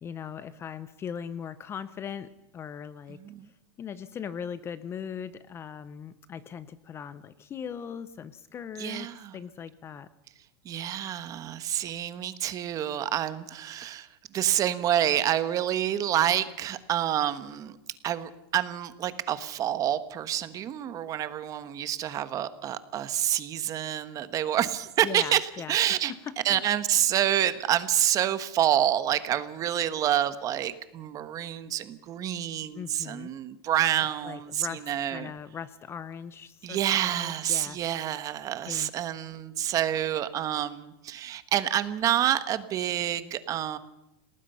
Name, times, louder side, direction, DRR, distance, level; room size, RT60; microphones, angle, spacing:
voice 1, 0.0-3.2 3.8-10.1 25.0-25.8 26.1-26.6 32.7-33.3 34.0-37.8 38.7-38.9, left 7 dB, 20° left, 15 dB, 0.7 m, -39 dB
voice 2, 8.8-9.3 10.6-14.1 14.3-17.7 18.0-25.4 25.7-26.1 26.4-35.3 36.6-43.8, right 11 dB, 25° right, 13 dB, 1.3 m, -28 dB
28.0 x 18.5 x 5.6 m, 0.90 s
supercardioid pair, 155°, 13 cm